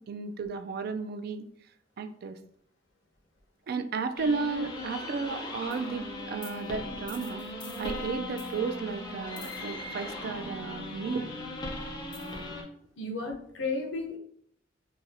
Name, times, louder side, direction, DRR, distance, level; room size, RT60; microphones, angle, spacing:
voice 1, 0.0-1.5 2.0-2.4 3.7-7.4 7.8-11.3, right 4 dB, 55° right, 10 dB, 0.3 m, -33 dB
sound 1, 4.2-12.6, left 1 dB, 25° left, 0.6 m, -38 dB
voice 2, 13.0-14.2, left 3 dB, 85° left, 1 dB, 0.7 m, -33 dB
4.0 x 2.4 x 2.6 m, 0.68 s
head